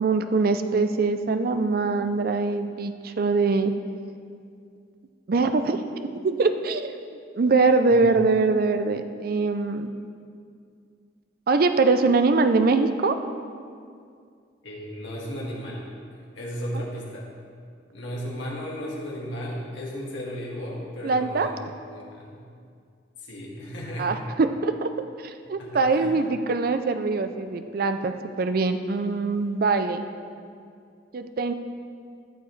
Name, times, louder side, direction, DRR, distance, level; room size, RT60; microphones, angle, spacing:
voice 1, 0.0-3.7 5.3-5.8 6.2-7.1 7.4-9.9 11.5-13.2 16.7-16.8 21.0-21.5 24.0-24.9 25.2-30.0 31.1-31.5, right 3 dB, 50° right, 9 dB, 0.4 m, -23 dB
voice 2, 14.6-16.0 16.3-17.2 17.9-21.5 21.9-22.4 23.2-24.1 25.6-26.1, equal, 75° left, -4 dB, 1.9 m, -35 dB
13.5 x 6.8 x 3.2 m, 2.3 s
head